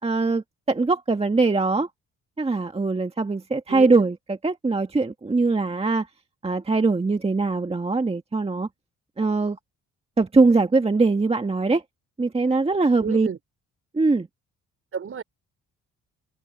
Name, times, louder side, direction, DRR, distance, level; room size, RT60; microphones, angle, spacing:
voice 1, 0.0-1.9 2.4-6.1 6.4-8.7 9.2-9.6 10.2-11.8 12.2-13.3 13.9-14.3, right 3 dB, 20° right, 1.7 m, -22 dB
voice 2, 3.7-4.0 13.0-13.4 14.9-15.2, right 6 dB, 45° right, 4.2 m, -31 dB
open air
cardioid pair, 90°, 30 cm